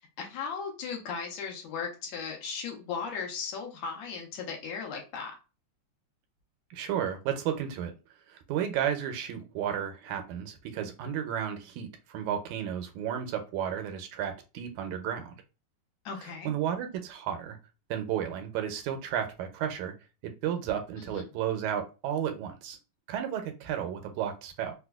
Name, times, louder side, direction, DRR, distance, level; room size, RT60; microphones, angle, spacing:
voice 1, 0.2-5.4 16.1-16.6 21.0-21.3, left 5 dB, 75° left, 1 dB, 1.9 m, -37 dB
voice 2, 6.7-7.9 8.3-15.4 16.4-17.6 17.9-19.9 20.2-22.8 23.1-24.7, right 9 dB, 80° right, 6 dB, 1.9 m, -33 dB
4.7 x 2.2 x 2.3 m, 0.31 s
omnidirectional pair, 3.3 m